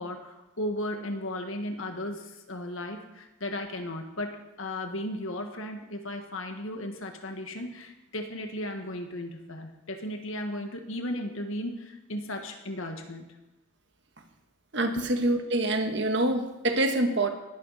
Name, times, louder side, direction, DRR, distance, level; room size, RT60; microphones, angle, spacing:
voice 1, 0.0-13.3 15.0-15.1, left 1 dB, 70° left, 5 dB, 1.7 m, -35 dB
voice 2, 14.7-17.3, right 1 dB, 55° right, 5 dB, 1.5 m, -26 dB
20.0 x 11.5 x 4.2 m, 1.0 s
head